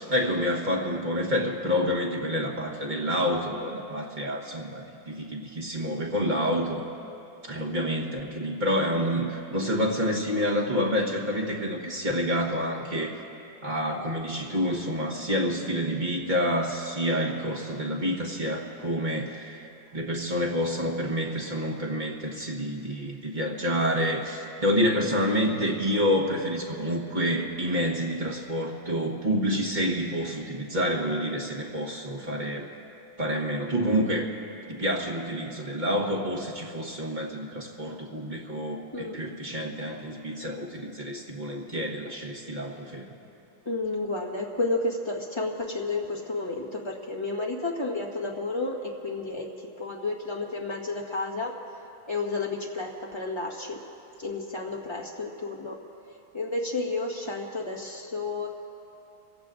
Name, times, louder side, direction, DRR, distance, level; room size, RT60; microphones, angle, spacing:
voice 1, 0.0-6.9 7.5-13.2 13.6-19.7 19.9-32.7 33.2-34.3 34.7-43.1, equal, 25° right, -2 dB, 1.2 m, -28 dB
voice 2, 43.6-49.5 49.8-51.5 52.1-53.8 54.2-55.8 56.3-58.5, left 3 dB, 15° left, -2 dB, 1.5 m, -31 dB
26.5 x 16.5 x 2.6 m, 2.8 s
omnidirectional pair, 2.2 m